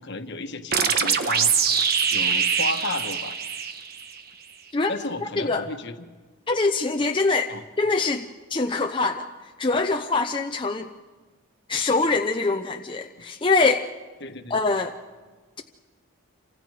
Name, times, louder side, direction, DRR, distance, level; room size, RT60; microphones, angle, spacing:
voice 1, 0.0-1.5 2.1-3.4 4.9-6.1 7.5-7.6 14.2-14.6, left 2 dB, 55° left, 7 dB, 1.4 m, -33 dB
sound 1, 0.7-4.2, right 6 dB, 45° right, 1.3 m, -23 dB
voice 2, 5.4-5.7 6.5-9.3 9.6-10.9 11.7-13.8 14.5-14.9, left 3 dB, 25° left, 4 dB, 0.6 m, -24 dB
28.0 x 25.5 x 4.9 m, 1.4 s
head